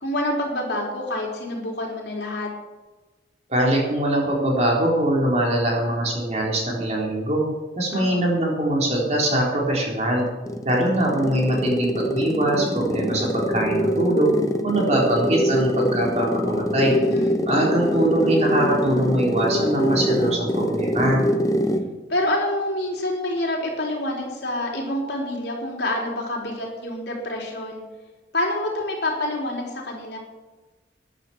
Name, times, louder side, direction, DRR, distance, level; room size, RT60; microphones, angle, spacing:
voice 1, 0.0-2.5 7.9-8.3 16.9-17.4 22.1-27.8 28.3-30.2, left 1 dB, 65° left, -1 dB, 3.9 m, -27 dB
voice 2, 3.5-7.5 7.8-10.3 10.6-14.3 14.6-17.0 17.5-21.2, right 1 dB, 35° right, -2 dB, 4.0 m, -22 dB
sound 1, 10.2-22.0, equal, 20° left, 0.8 m, -24 dB
14.0 x 10.5 x 6.2 m, 1.2 s
head